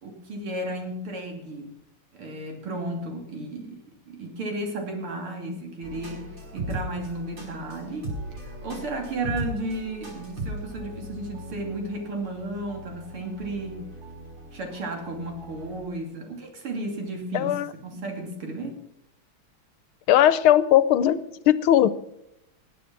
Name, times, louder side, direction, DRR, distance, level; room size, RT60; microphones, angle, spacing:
voice 1, 0.0-1.7 2.1-13.8 14.5-18.8, right 2 dB, 85° right, 3 dB, 3.7 m, -34 dB
sound 1, 5.8-15.8, right 1 dB, 60° right, 6.4 m, -38 dB
voice 2, 17.3-17.7 20.1-21.9, left 11 dB, 85° left, 16 dB, 1.6 m, -19 dB
19.5 x 8.5 x 6.0 m, 0.81 s
omnidirectional pair, 2.3 m